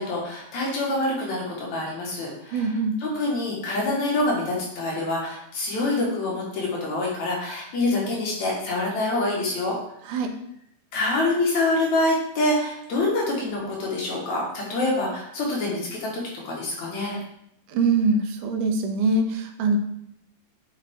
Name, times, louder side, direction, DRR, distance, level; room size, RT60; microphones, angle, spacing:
voice 1, 0.0-2.7 3.0-9.8 10.9-17.2, left 2 dB, 65° left, -2 dB, 2.9 m, -26 dB
voice 2, 2.5-3.0 10.0-10.3 17.7-19.8, right 3 dB, 85° right, 4 dB, 2.4 m, -23 dB
7.6 x 5.4 x 3.7 m, 0.76 s
omnidirectional pair, 3.6 m